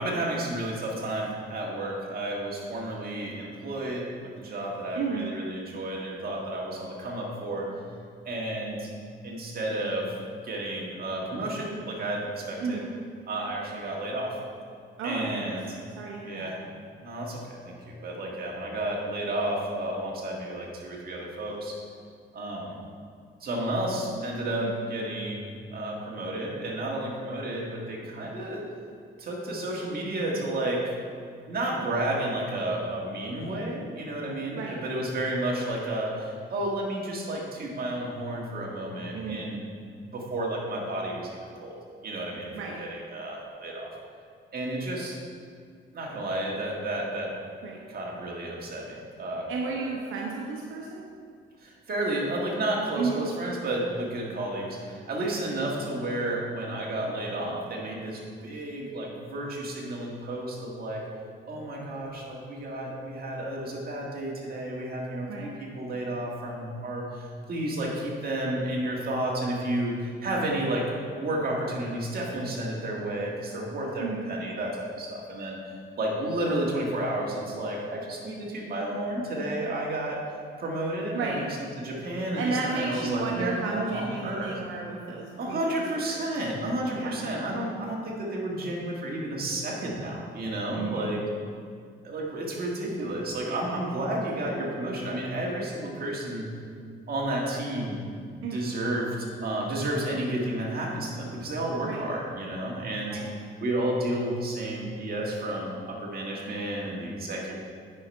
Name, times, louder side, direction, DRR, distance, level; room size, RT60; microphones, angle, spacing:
voice 1, 0.0-7.7 8.2-8.9 9.2-10.1 10.4-12.8 13.3-14.4 15.0-15.8 16.2-16.6 17.0-21.8 22.3-22.8 23.4-28.7 29.2-30.8 31.5-39.7 40.0-41.8 42.0-44.0 44.5-45.2 45.9-47.3 47.9-50.1 51.6-61.0 61.5-75.6 76.0-81.5 81.8-84.5 85.4-91.2 92.0-96.5 97.1-98.0 98.5-103.2 103.6-107.5, right 1 dB, 50° right, -2 dB, 1.8 m, -31 dB
voice 2, 4.9-5.3 12.6-12.8 15.0-15.6 16.0-16.5 24.6-24.8 34.5-34.8 39.1-39.4 42.5-42.8 47.6-47.8 49.5-51.1 52.9-53.2 55.2-55.3 65.3-65.5 74.0-74.2 81.1-81.4 82.3-86.3 86.9-87.2 90.8-91.2 98.4-98.6 101.8-102.0 103.1-103.3, right 4 dB, 85° right, -2 dB, 0.9 m, -33 dB
9.7 x 4.9 x 4.4 m, 2.1 s
cardioid pair, 90°, 20 cm